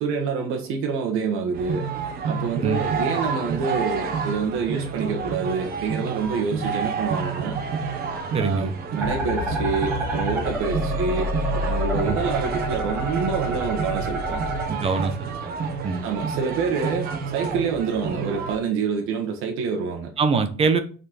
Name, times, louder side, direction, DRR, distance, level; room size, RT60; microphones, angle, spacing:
voice 1, 0.0-1.9 2.3-7.6 8.4-14.5 16.0-20.1, right 5 dB, 75° right, 1.3 m, -27 dB
sound 1, 1.5-18.6, right 5 dB, 45° right, 1.2 m, -29 dB
voice 2, 8.3-8.7 12.0-12.2 14.7-15.5 15.8-16.1 20.2-20.8, right 5 dB, 30° right, 0.8 m, -23 dB
sound 2, 9.0-14.6, left 1 dB, 10° right, 2.3 m, -28 dB
6.2 x 4.3 x 5.8 m
cardioid pair, 165°, 21 cm